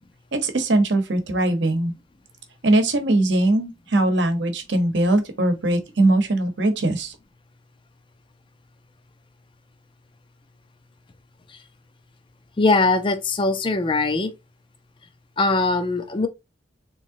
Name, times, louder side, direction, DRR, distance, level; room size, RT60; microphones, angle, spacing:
voice 1, 0.4-1.9 2.6-7.1, right 1 dB, 70° right, 0.9 m, -21 dB
voice 2, 12.6-14.3 15.4-16.3, left 3 dB, 25° left, 0.5 m, -21 dB
3.7 x 3.0 x 2.6 m
head